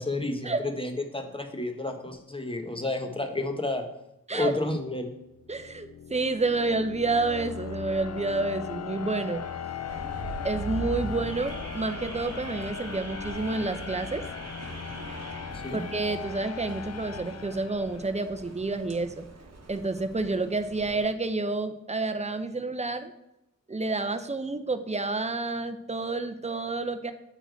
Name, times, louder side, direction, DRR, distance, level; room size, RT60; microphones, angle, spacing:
voice 1, 0.0-3.9 4.3-5.1 15.5-15.8, left 2 dB, 20° left, 5 dB, 1.0 m, -31 dB
sound 1, 5.4-18.3, left 8 dB, 55° left, 0.4 m, -38 dB
voice 2, 5.5-9.4 10.4-14.2 15.7-19.2 19.7-23.1 23.7-27.1, right 3 dB, 20° right, 9 dB, 0.6 m, -29 dB
Car / Alarm, 9.9-21.0, right 2 dB, 55° right, 1.0 m, -41 dB
7.9 x 4.4 x 4.6 m, 0.87 s
wide cardioid pair, 55°, 30 cm